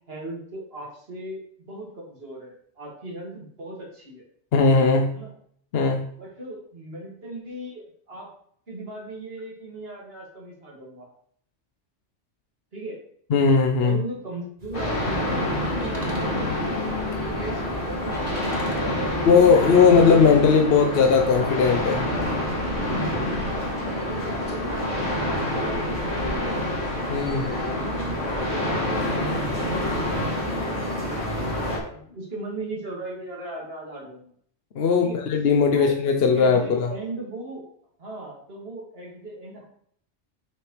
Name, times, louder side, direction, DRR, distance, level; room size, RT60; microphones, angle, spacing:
voice 1, 0.1-4.3 5.1-5.3 6.2-8.3 8.7-11.1 12.7-13.0 13.8-19.4 23.4-26.7 27.2-34.3 35.0-35.2 35.7-35.9 36.3-37.6 38.0-39.7, right 2 dB, 55° right, -3 dB, 2.5 m, -38 dB
voice 2, 4.5-5.1 5.7-6.0 13.3-14.0 19.3-22.1 27.1-27.5 34.7-36.9, left 5 dB, 60° left, 3 dB, 0.9 m, -18 dB
sound 1, 14.6-20.1, right 1 dB, 35° right, 1.2 m, -42 dB
sound 2, 14.7-31.8, left 1 dB, 85° left, 2.9 m, -27 dB
7.7 x 6.2 x 3.2 m, 0.63 s
omnidirectional pair, 1.2 m